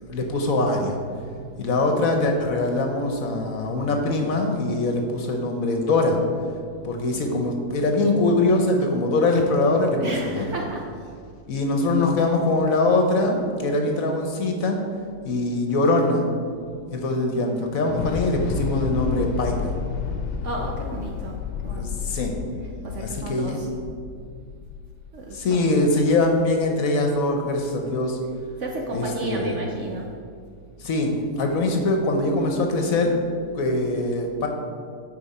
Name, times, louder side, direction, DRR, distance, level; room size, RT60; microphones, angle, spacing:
voice 1, 0.1-1.0 1.6-6.2 6.8-10.5 11.5-14.8 15.2-16.3 16.9-19.7 21.7-22.3 23.0-23.6 25.3-28.2 28.9-29.5 30.8-33.1 33.5-34.5, left 2 dB, 60° left, 3 dB, 1.1 m, -22 dB
voice 2, 10.0-10.9 20.4-21.4 21.6-22.0 22.6-23.7 25.1-25.6 28.6-30.1, right 2 dB, 60° right, 0 dB, 0.8 m, -32 dB
Thunder / Explosion, 17.8-26.1, left 6 dB, 85° left, 1.2 m, -31 dB
8.8 x 5.0 x 4.2 m, 2.2 s
omnidirectional pair, 1.8 m